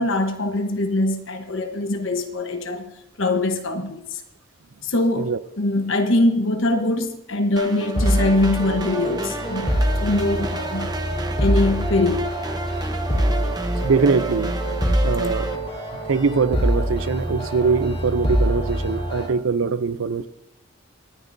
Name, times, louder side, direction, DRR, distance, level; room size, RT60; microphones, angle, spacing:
voice 1, 0.0-2.9 3.2-4.2 4.8-5.3 5.6-10.9 11.4-12.3, left 2 dB, 70° left, 1.1 m, -22 dB
sound 1, 7.6-15.6, right 2 dB, 20° right, 0.9 m, -32 dB
sound 2, 7.9-19.3, equal, 30° left, 3.4 m, -24 dB
voice 2, 13.8-14.5 15.0-15.5 16.1-20.3, right 5 dB, 80° right, 0.5 m, -22 dB
25.0 x 9.7 x 2.7 m
head